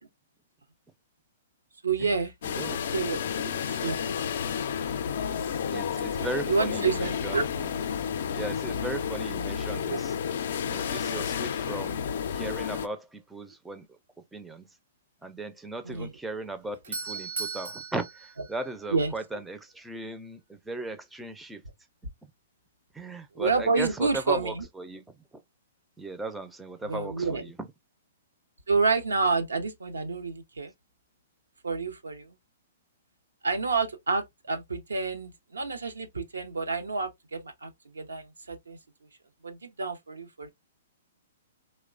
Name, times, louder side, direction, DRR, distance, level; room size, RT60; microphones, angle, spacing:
voice 1, 1.8-2.6 2.9-3.2 3.4-4.2 6.2-7.4 9.9-10.0 15.9-16.1 18.9-19.1 23.4-24.6 26.9-27.4 28.7-30.7 31.6-32.3 33.4-37.7 37.9-38.8 39.4-40.5, right 4 dB, 90° right, 0.6 m, -29 dB
sound 1, 2.4-12.9, left 7 dB, 65° left, 0.3 m, -31 dB
voice 2, 2.4-2.8 3.3-3.4 5.7-7.7 8.3-10.2 10.6-12.1 12.3-14.7 15.2-21.6 22.2-22.3 22.9-25.4 26.0-27.7, right 2 dB, 5° right, 0.4 m, -37 dB
Doorbell, 16.5-19.3, right 4 dB, 70° right, 0.9 m, -38 dB
2.9 x 2.1 x 2.4 m
hypercardioid pair, 125°, 0 cm